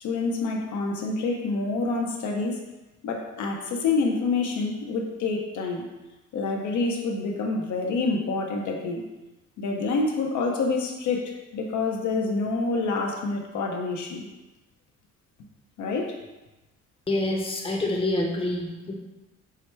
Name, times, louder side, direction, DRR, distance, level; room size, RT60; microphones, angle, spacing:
voice 1, 0.0-2.6 3.0-5.9 6.3-9.1 9.6-14.3 15.8-16.2, left 3 dB, 70° left, 1 dB, 0.7 m, -27 dB
voice 2, 17.1-18.9, left 1 dB, 20° left, 0 dB, 0.7 m, -27 dB
4.7 x 2.1 x 4.5 m, 1.1 s
cardioid pair, 90°, 30 cm